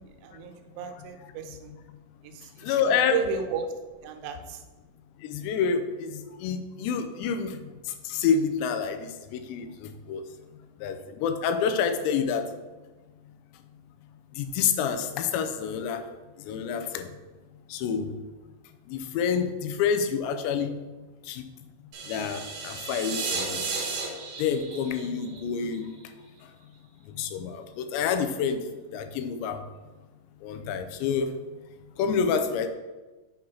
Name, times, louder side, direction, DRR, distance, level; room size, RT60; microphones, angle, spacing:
voice 1, 0.0-1.7 2.2-3.6 4.0-4.6, right 7 dB, 85° right, 5 dB, 2.9 m, -34 dB
voice 2, 2.6-3.2 5.3-7.6 8.1-9.0 9.3-9.7 10.1-10.2 10.8-11.0 11.2-12.4 14.4-16.0 16.5-17.1 17.7-18.1 18.9-20.7 21.3-21.4 22.1-23.7 24.4-25.9 27.2-28.6 28.9-29.6 30.4-31.3 32.0-32.7, left 6 dB, 90° left, 7 dB, 2.9 m, -27 dB
sound 1, 21.9-26.0, right 4 dB, 65° right, 2.7 m, -34 dB
7.9 x 3.8 x 5.8 m, 1.2 s
omnidirectional pair, 4.9 m